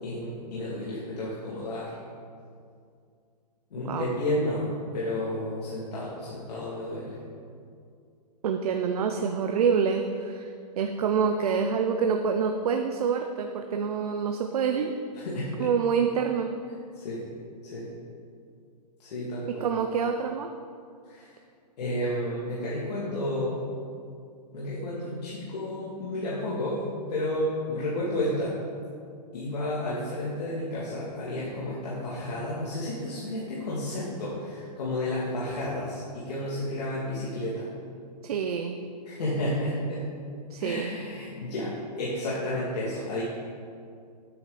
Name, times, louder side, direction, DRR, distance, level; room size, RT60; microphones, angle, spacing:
voice 1, 0.0-1.9 3.7-4.7 4.9-7.2 15.1-15.7 16.9-17.2 17.6-17.9 19.0-19.7 21.0-21.3 21.8-23.6 24.5-26.8 27.1-28.5 29.3-37.7 39.0-40.0 40.6-41.7 42.0-43.2, left 1 dB, 70° left, -8 dB, 2.8 m, -31 dB
voice 2, 8.4-10.5 10.8-14.9 15.6-16.5 19.5-20.5 38.2-38.8 40.5-40.9, right 6 dB, 60° right, 5 dB, 0.7 m, -26 dB
10.5 x 9.2 x 4.2 m, 2.3 s
hypercardioid pair, 165°, 21 cm